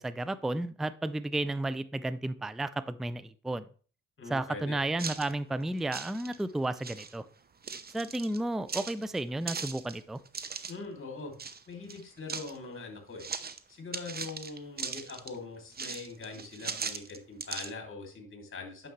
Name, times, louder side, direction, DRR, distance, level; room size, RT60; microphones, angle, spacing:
voice 1, 0.0-3.6 4.3-7.2 7.9-10.2, right 2 dB, ahead, 15 dB, 0.5 m, -32 dB
voice 2, 4.2-4.8 10.7-11.3 11.7-13.3 13.7-18.9, left 3 dB, 35° left, 2 dB, 2.9 m, -42 dB
sound 1, 5.0-5.3 5.8-6.5 6.8-7.2 7.6-8.4 8.7-10.8 11.4-11.6 11.9-12.6 13.2-13.6 13.9-15.4 15.7-17.7, right 5 dB, 25° right, 0.9 m, -39 dB
9.1 x 6.5 x 3.2 m, 0.40 s
hypercardioid pair, 45°, 34 cm